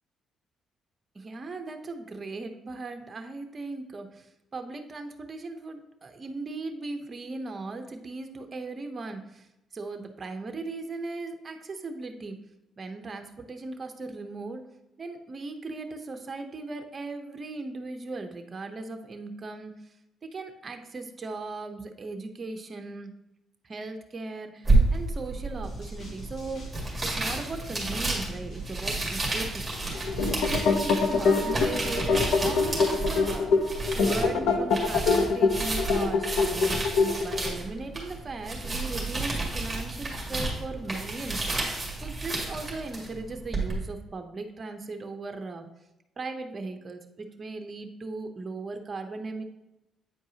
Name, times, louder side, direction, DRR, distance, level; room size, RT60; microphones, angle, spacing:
voice 1, 1.1-4.3 4.5-9.4 9.7-12.4 12.8-14.6 15.0-19.7 20.3-23.1 23.6-26.6 27.0-29.7 30.2-33.5 33.9-36.9 37.2-41.4 42.0-45.7 46.2-49.4, right 3 dB, 35° right, 6 dB, 0.7 m, -38 dB
sound 1, 24.6-43.7, right 2 dB, 15° right, 2.1 m, -30 dB
sound 2, 25.6-31.5, left 1 dB, 50° left, 2.2 m, -46 dB
sound 3, 29.9-37.6, left 4 dB, 80° left, 0.6 m, -25 dB
8.5 x 4.6 x 2.8 m, 0.93 s
cardioid pair, 100°, 0 cm